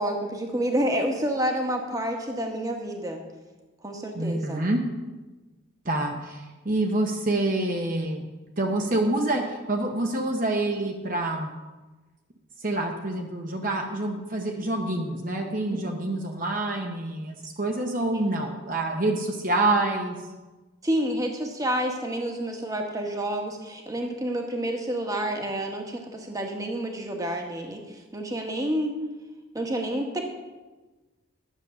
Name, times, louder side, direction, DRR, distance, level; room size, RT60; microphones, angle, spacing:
voice 1, 0.0-3.2 3.8-4.7 15.7-16.0 20.8-29.0 29.5-30.4, right 1 dB, 15° right, 2 dB, 1.3 m, -29 dB
voice 2, 4.1-4.8 5.8-8.3 8.6-11.5 12.6-20.2, right 2 dB, 40° right, 2 dB, 1.0 m, -27 dB
11.0 x 7.1 x 6.8 m, 1.2 s
head